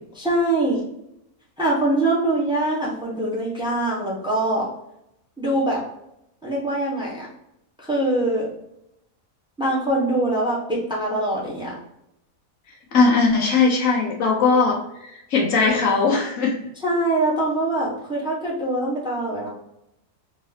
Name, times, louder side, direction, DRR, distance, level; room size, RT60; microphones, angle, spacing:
voice 1, 0.2-0.8 1.6-4.6 5.4-5.8 6.4-7.3 7.8-8.5 9.6-11.7 16.8-19.5, right 1 dB, 5° right, -5 dB, 1.0 m, -23 dB
voice 2, 12.9-16.6, left 4 dB, 65° left, -1 dB, 1.1 m, -19 dB
3.9 x 2.9 x 2.8 m, 0.82 s
omnidirectional pair, 1.5 m